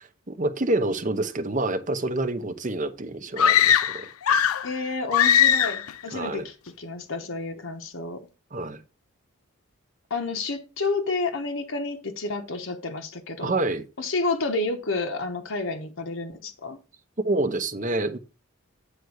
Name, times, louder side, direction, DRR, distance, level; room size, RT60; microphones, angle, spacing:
voice 1, 0.0-4.1 6.1-6.5 8.5-8.8 13.4-13.8 17.2-18.2, right 2 dB, 35° right, 0.9 m, -27 dB
sound 1, 3.4-4.7 5.1-5.9, left 9 dB, 80° left, 0.4 m, -19 dB
voice 2, 4.6-8.3 10.1-13.5 14.0-16.8, left 3 dB, 65° left, 1.0 m, -30 dB
9.2 x 3.5 x 6.4 m
head